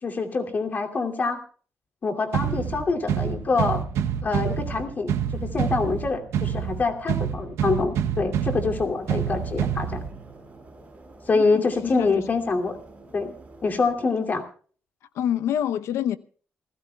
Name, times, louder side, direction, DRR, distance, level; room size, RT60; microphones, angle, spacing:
voice 1, 0.0-1.4 2.0-3.8 4.2-10.0 11.3-12.8 13.1-13.3 13.6-14.4, left 4 dB, 40° left, 2.7 m, -25 dB
sound 1, 2.3-10.3, right 8 dB, 85° right, 0.9 m, -27 dB
sound 2, 8.7-13.9, right 2 dB, 30° right, 6.7 m, -48 dB
voice 2, 11.3-12.3 15.1-16.2, left 10 dB, 90° left, 0.8 m, -27 dB
28.0 x 15.5 x 2.3 m
cardioid pair, 115°, 5 cm